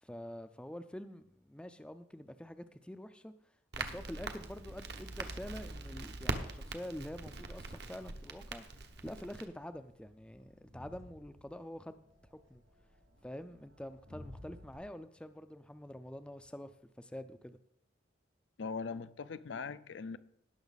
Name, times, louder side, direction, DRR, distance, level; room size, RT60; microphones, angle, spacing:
voice 1, 0.0-3.3 3.8-8.7 9.0-12.6 13.2-17.6, left 1 dB, 5° left, 0.4 m, -46 dB
Crackle, 3.7-9.4, right 3 dB, 60° right, 0.9 m, -42 dB
Crowd, 4.0-14.8, left 1 dB, 75° right, 3.4 m, -59 dB
voice 2, 18.6-20.2, left 5 dB, 70° left, 0.5 m, -40 dB
17.5 x 6.1 x 4.0 m
head